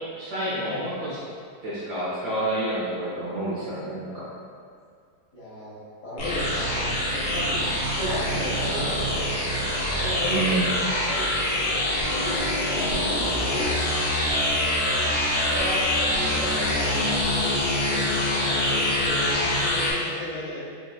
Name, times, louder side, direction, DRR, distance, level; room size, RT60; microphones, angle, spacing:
voice 1, 0.2-1.1 1.6-4.2 10.2-10.7, right 2 dB, 60° right, -10 dB, 1.2 m, -28 dB
voice 2, 5.3-7.7 8.0-9.3 10.0-11.4 12.1-13.7 14.8-17.0 17.7-20.6, left 1 dB, 45° left, -12 dB, 1.3 m, -34 dB
sound 1, 6.2-19.9, left 1 dB, 65° left, 0.8 m, -25 dB
4.3 x 2.8 x 2.4 m, 2.1 s
omnidirectional pair, 2.3 m